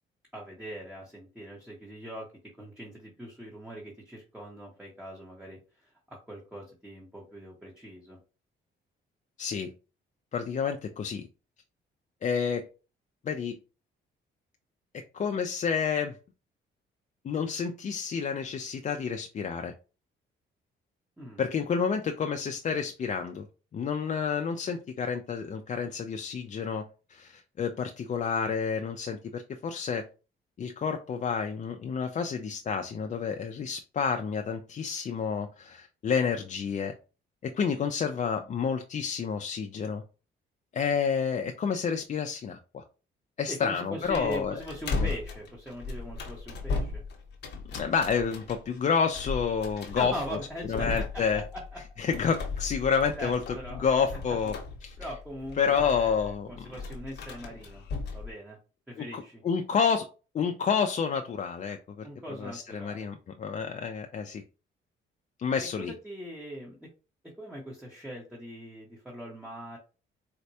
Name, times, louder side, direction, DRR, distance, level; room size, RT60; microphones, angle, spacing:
voice 1, 0.3-2.3 2.6-5.9 6.3-8.2 21.2-21.4 43.5-47.0 50.0-51.8 53.1-53.9 54.3-54.4 55.0-57.8 58.1-58.6 58.9-59.4 62.0-63.1 65.8-66.9 67.4-69.8, equal, 5° right, -2 dB, 1.0 m, -41 dB
voice 2, 9.4-9.7 10.3-11.2 12.2-12.7 13.2-13.6 14.9-16.2 17.2-19.7 21.4-23.5 23.7-30.0 30.6-36.9 37.4-40.0 40.7-42.8 43.4-44.6 45.0-45.1 47.7-50.1 50.7-51.4 52.0-53.4 53.8-54.5 54.8-55.0 55.6-56.7 59.0-60.1 60.3-64.4 65.4-65.9, left 6 dB, 40° left, 5 dB, 0.4 m, -29 dB
sound 1, 44.0-58.3, left 3 dB, 60° left, 0.9 m, -37 dB
4.2 x 2.1 x 2.7 m, 0.33 s
cardioid pair, 90°, 20 cm